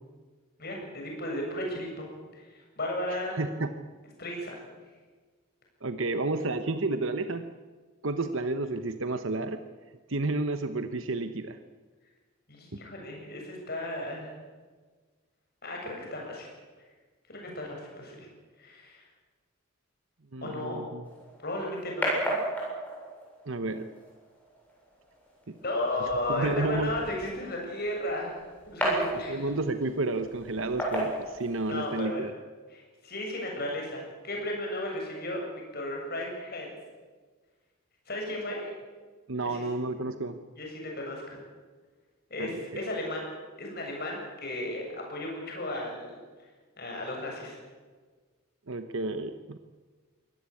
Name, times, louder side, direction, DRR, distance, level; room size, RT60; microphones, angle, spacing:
voice 1, 0.6-2.1 2.3-3.5 4.2-4.6 12.5-14.3 15.6-16.5 17.3-18.3 18.6-19.0 20.4-20.8 21.4-22.4 25.6-29.5 31.7-32.2 32.7-35.4 35.7-36.7 38.1-38.7 39.4-39.6 40.6-41.4 42.3-43.3 43.6-46.2 46.8-47.6, left 1 dB, 45° left, 0 dB, 7.6 m, -34 dB
voice 2, 3.4-3.7 5.8-7.5 8.0-9.6 10.1-11.6 20.3-21.0 23.5-23.9 25.5-25.6 26.3-26.9 29.3-32.3 39.3-40.4 42.4-42.8 48.7-49.6, right 2 dB, 60° right, 9 dB, 1.0 m, -31 dB
sound 1, 21.0-32.0, right 1 dB, 5° left, 7.6 m, -35 dB
24.0 x 18.0 x 8.6 m, 1.4 s
head